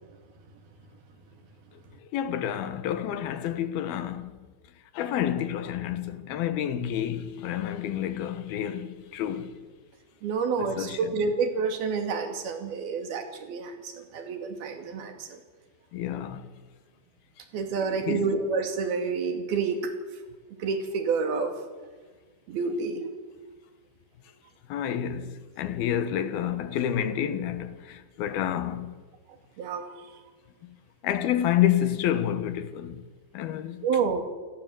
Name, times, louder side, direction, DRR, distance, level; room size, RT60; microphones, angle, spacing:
voice 1, 2.1-4.4 4.9-9.6 10.6-11.1 15.9-16.5 17.8-18.4 24.7-28.9 30.6-30.7 31.0-33.0 33.3-33.9, left 10 dB, 85° left, 3.2 m, -29 dB
voice 2, 10.2-15.4 17.5-19.9 20.6-21.5 22.5-23.0 29.6-29.9 33.8-34.2, right 5 dB, 90° right, 4.4 m, -28 dB
29.0 x 17.5 x 7.9 m
omnidirectional pair, 4.3 m